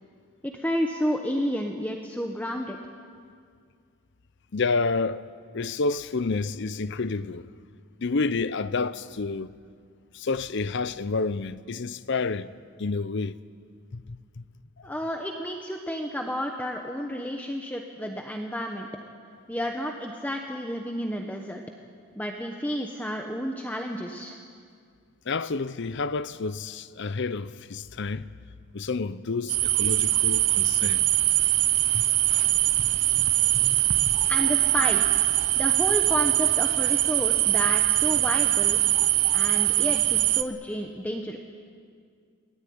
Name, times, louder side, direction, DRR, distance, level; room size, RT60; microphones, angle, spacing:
voice 1, 0.4-2.8 14.8-18.9 19.5-21.6 22.2-24.4 34.3-35.2 35.6-38.8 39.3-41.4, equal, 5° left, 1.0 m, -31 dB
voice 2, 4.5-5.2 5.5-7.5 8.0-9.5 10.1-12.5 12.8-13.4 13.9-14.4 25.3-28.3 28.7-31.1 31.9-32.1, left 4 dB, 55° left, 0.6 m, -29 dB
sound 1, 29.5-40.4, right 15 dB, 85° right, 0.8 m, -22 dB
22.5 x 17.5 x 9.4 m
head